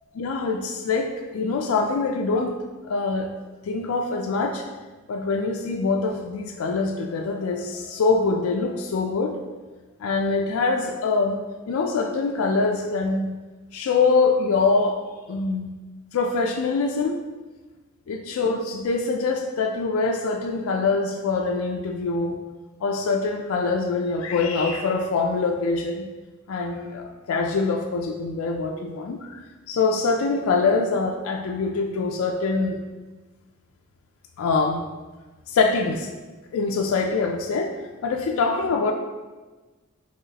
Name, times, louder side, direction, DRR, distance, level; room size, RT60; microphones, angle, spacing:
voice 1, 0.1-2.6 2.8-3.3 3.6-4.6 5.1-9.4 10.0-13.3 13.7-15.0 15.3-15.7 16.1-17.2 18.1-22.4 22.8-26.1 26.5-29.4 29.7-32.8 34.4-34.9 35.5-36.1 36.5-37.8 38.0-38.9, left 4 dB, 85° left, 3 dB, 0.4 m, -24 dB
5.6 x 3.0 x 2.7 m, 1.2 s
head